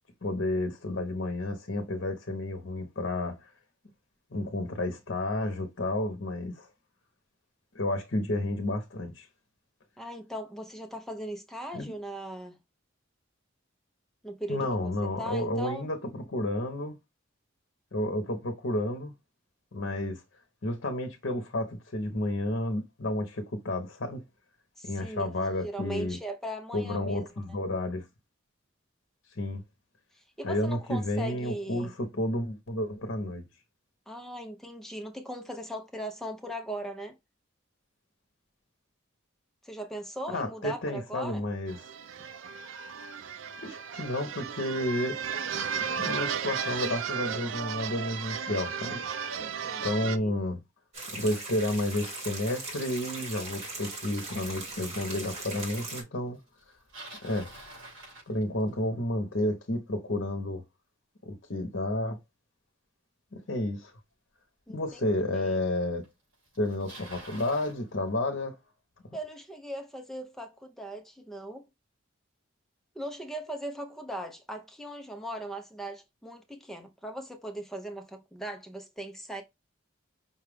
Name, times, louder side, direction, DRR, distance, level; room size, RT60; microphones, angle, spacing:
voice 1, 0.2-3.5 4.3-6.7 7.7-9.3 11.7-11.9 14.5-17.0 17.9-19.1 19.7-20.2 20.6-24.2 24.8-26.2 26.7-28.1 29.3-29.6 30.4-33.4 40.3-41.8 43.6-45.2 45.8-49.0 49.8-50.6 51.1-56.4 57.2-57.5 58.3-60.6 61.2-62.2 63.3-63.9 64.7-66.0 66.6-68.6, left 1 dB, 60° left, 0.9 m, -31 dB
voice 2, 10.0-12.6 14.2-15.9 24.8-27.3 30.1-31.9 34.1-37.2 39.6-41.4 49.4-50.3 64.7-65.6 69.1-71.7 72.9-79.4, right 1 dB, ahead, 0.6 m, -39 dB
sound 1, 41.7-50.2, right 7 dB, 80° right, 0.4 m, -34 dB
sound 2, 50.9-56.0, right 2 dB, 35° right, 1.8 m, -39 dB
Bicycle, 56.6-58.9 64.0-64.1 64.9-65.0 66.0-66.1 66.3-67.8, right 2 dB, 65° right, 3.2 m, -47 dB
5.6 x 2.4 x 3.4 m
head